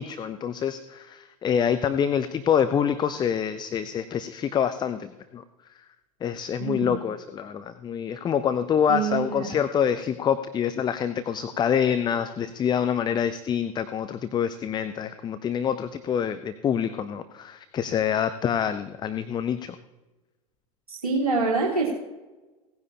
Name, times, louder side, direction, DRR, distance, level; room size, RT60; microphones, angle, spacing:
voice 1, 0.0-5.4 6.2-19.8, left 8 dB, 25° left, 11 dB, 0.6 m, -26 dB
voice 2, 6.6-7.0 8.9-9.5 20.9-21.9, right 4 dB, 85° right, -3 dB, 1.9 m, -26 dB
17.5 x 9.8 x 2.8 m, 1.1 s
figure-of-eight pair, 85°, 19 cm